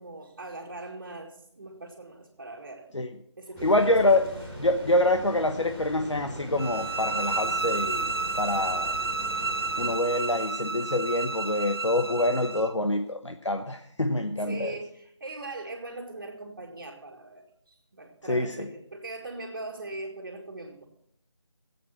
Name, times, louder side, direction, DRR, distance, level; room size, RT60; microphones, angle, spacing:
voice 1, 0.0-2.9 3.1-4.2 7.5-7.6 14.4-20.8, right 2 dB, 35° right, -2 dB, 2.1 m, -41 dB
sound 1, 3.5-10.0, equal, 5° left, 1.3 m, -41 dB
voice 2, 3.6-4.3 4.6-8.1 8.4-9.0 9.8-14.7 18.3-18.7, left 1 dB, 75° left, 6 dB, 1.2 m, -26 dB
sound 2, 6.6-12.7, right 3 dB, 55° right, 0.8 m, -31 dB
17.0 x 8.5 x 6.0 m, 0.70 s
figure-of-eight pair, 165°, 15 cm